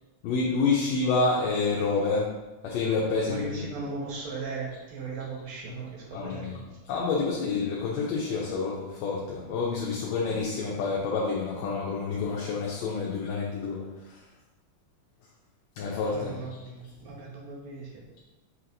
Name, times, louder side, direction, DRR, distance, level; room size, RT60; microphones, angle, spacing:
voice 1, 0.2-2.3 2.6-3.6 6.1-6.6 6.9-13.9 15.8-16.3, left 4 dB, 75° left, -4 dB, 1.7 m, -28 dB
voice 2, 3.3-6.6 16.1-18.1, right 4 dB, 75° right, -2 dB, 2.0 m, -37 dB
5.6 x 2.9 x 2.6 m, 1.1 s
omnidirectional pair, 3.3 m